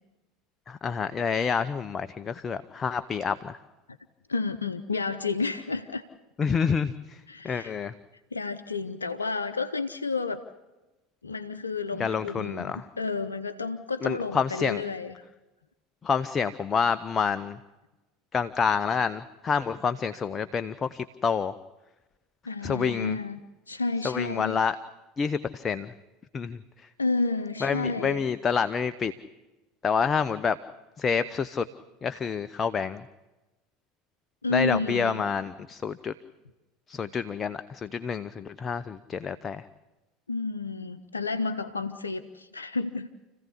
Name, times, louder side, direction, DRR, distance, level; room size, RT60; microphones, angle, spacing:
voice 1, 0.7-3.6 6.4-7.2 7.4-7.9 12.0-12.8 14.0-14.8 16.0-17.6 18.3-21.5 22.6-23.2 24.0-24.8 25.2-25.9 26.3-26.6 27.6-29.1 29.8-30.6 31.0-31.6 32.0-33.0 34.5-36.1 36.9-39.6, left 6 dB, 30° left, 12 dB, 0.8 m, -28 dB
voice 2, 4.3-6.0 7.3-7.8 8.3-10.4 11.2-15.1 22.5-23.4 23.7-24.6 27.0-28.3 34.4-35.3 40.3-43.1, left 3 dB, 85° left, 8 dB, 0.7 m, -31 dB
29.0 x 15.5 x 8.4 m, 1.1 s
figure-of-eight pair, 70°, 0 cm